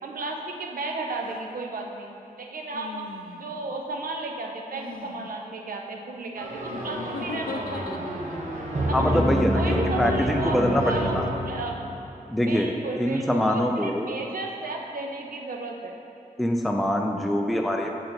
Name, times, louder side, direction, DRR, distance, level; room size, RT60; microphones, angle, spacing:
voice 1, 0.0-3.0 3.3-7.9 8.9-9.2 9.5-10.6 10.8-11.2 11.4-11.7 12.4-15.9, right 3 dB, 70° right, 1 dB, 0.7 m, -34 dB
sound 1, 1.2-1.4 2.7-3.6 4.7-5.3 6.7-8.4 9.1-9.6 10.7-11.2, left 5 dB, 75° left, 0.4 m, -39 dB
sound 2, 6.3-11.9, equal, 50° right, 1.1 m, -28 dB
voice 2, 8.9-11.2 12.3-14.1 16.4-17.9, left 1 dB, ahead, 2 dB, 0.3 m, -24 dB
6.5 x 3.9 x 4.4 m, 2.8 s
wide cardioid pair, 95°, 15 cm